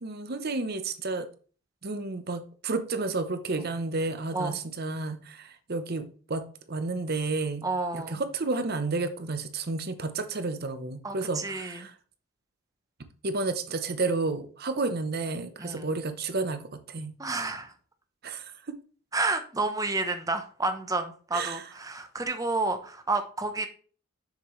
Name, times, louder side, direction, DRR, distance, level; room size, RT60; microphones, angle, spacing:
voice 1, 0.0-1.3 1.8-7.7 7.9-11.9 13.2-17.1 18.2-18.7 21.3-21.6, right 3 dB, 45° right, 10 dB, 0.8 m, -31 dB
voice 2, 7.6-8.2 11.0-11.9 15.6-15.9 17.2-17.7 19.1-23.7, right 3 dB, 15° right, 7 dB, 0.9 m, -30 dB
7.4 x 6.8 x 3.2 m, 0.41 s
head